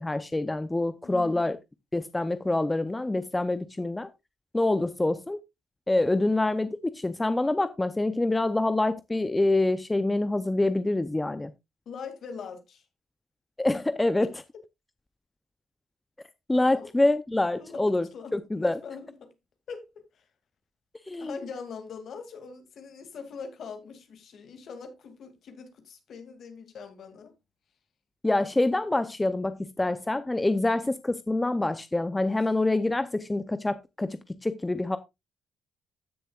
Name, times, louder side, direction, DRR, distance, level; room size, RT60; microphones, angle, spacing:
voice 1, 0.0-1.6 1.9-4.1 4.5-5.4 5.9-11.5 13.6-14.3 16.5-18.8 21.1-21.4 28.2-35.0, left 2 dB, 15° left, 0.6 m, -26 dB
voice 2, 1.0-1.4 11.9-12.8 16.5-16.9 17.6-19.3 19.7-20.2 21.2-27.3 30.5-30.7, left 5 dB, 60° left, 2.4 m, -42 dB
15.0 x 6.7 x 2.4 m
cardioid pair, 90°, 0 cm